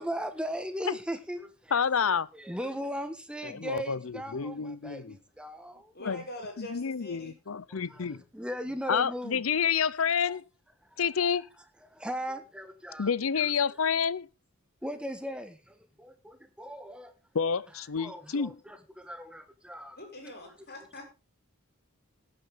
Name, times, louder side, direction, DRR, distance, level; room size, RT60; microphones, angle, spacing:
voice 1, 0.0-5.9 7.7-9.4 11.9-13.5 14.8-17.1 18.0-20.0, equal, 5° right, 1.4 m, -38 dB
voice 2, 1.7-2.3 3.4-5.2 6.0-6.2 6.6-8.2 8.9-10.4 11.0-11.4 13.0-14.3 17.3-18.6, left 6 dB, 70° left, 0.6 m, -29 dB
voice 3, 5.9-7.3 19.9-21.0, left 2 dB, 50° left, 6.4 m, -43 dB
17.5 x 8.9 x 3.7 m
head